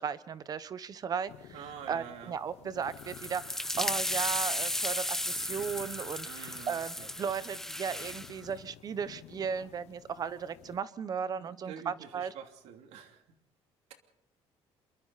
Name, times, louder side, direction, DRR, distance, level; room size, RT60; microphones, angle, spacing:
voice 1, 0.0-1.3 1.9-12.3, right 7 dB, 35° right, 15 dB, 1.0 m, -36 dB
sound 1, 1.3-10.8, left 14 dB, 85° left, 1.0 m, -53 dB
voice 2, 1.5-2.3 6.3-7.3 11.4-13.4, right 8 dB, 85° right, 5 dB, 2.9 m, -47 dB
sound 2, 2.9-8.3, left 1 dB, 5° left, 0.7 m, -35 dB
27.5 x 23.5 x 4.2 m, 0.74 s
cardioid pair, 150°, 11 cm